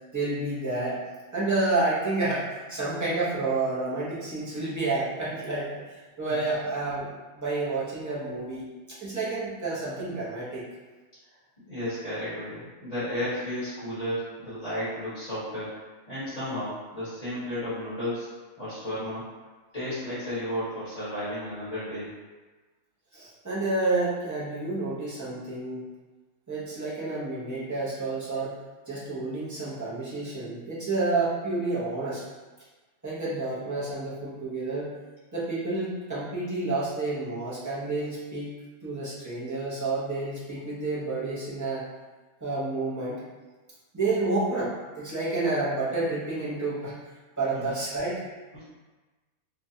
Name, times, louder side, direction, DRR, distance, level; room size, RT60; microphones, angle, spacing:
voice 1, 0.1-1.0 1.3-10.6 23.1-25.8 26.5-28.6 28.9-32.2 33.0-34.9 35.3-38.5 38.8-41.8 42.4-43.2 43.9-46.9 47.4-48.2, right 2 dB, 20° right, -9 dB, 0.4 m, -29 dB
voice 2, 11.6-15.7 16.1-18.3 18.6-19.3 19.7-22.1 47.5-47.7 48.5-48.6, left 1 dB, 30° left, -14 dB, 1.2 m, -33 dB
2.9 x 2.3 x 2.7 m, 1.2 s
omnidirectional pair, 1.5 m